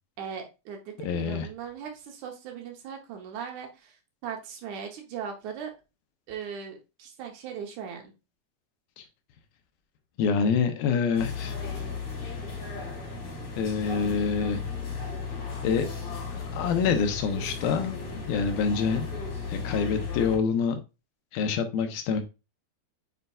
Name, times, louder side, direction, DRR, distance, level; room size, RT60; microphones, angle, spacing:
voice 1, 0.2-4.0 4.2-5.7 6.3-8.1, right 7 dB, 70° right, 3 dB, 1.9 m, -38 dB
voice 2, 1.0-1.5 9.0-9.1 10.2-11.5 13.6-14.6 15.6-15.9 16.3-19.1 19.5-20.8 21.3-22.2, left 6 dB, 80° left, 7 dB, 2.5 m, -26 dB
sound 1, 11.1-20.4, left 4 dB, 45° left, 3.8 m, -35 dB
7.9 x 5.4 x 2.3 m, 0.27 s
omnidirectional pair, 4.4 m